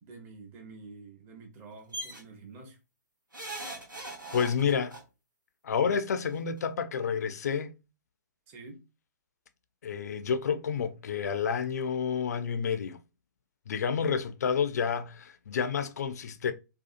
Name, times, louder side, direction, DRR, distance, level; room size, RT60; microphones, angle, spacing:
voice 1, 0.0-2.8 8.5-8.8, right 3 dB, 20° right, 0.7 m, -48 dB
sound 1, 1.9-2.2 3.3-5.0 6.2-6.3 6.6-6.7, right 2 dB, 90° right, 0.9 m, -39 dB
voice 2, 4.3-5.0 5.6-7.7 9.8-13.0 13.7-16.5, left 6 dB, 55° left, 0.4 m, -29 dB
2.7 x 2.3 x 2.4 m
figure-of-eight pair, 120°, 10 cm